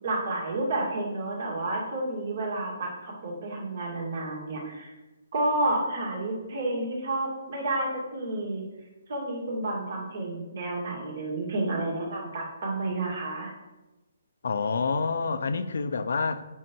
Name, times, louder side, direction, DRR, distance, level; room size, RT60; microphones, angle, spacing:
voice 1, 0.0-4.9 5.3-8.6 9.1-13.5, right 2 dB, 50° right, -1 dB, 2.4 m, -30 dB
voice 2, 14.4-16.4, left 4 dB, 70° left, 10 dB, 0.6 m, -27 dB
8.9 x 5.5 x 4.6 m, 1.1 s
hypercardioid pair, 175°, 0 cm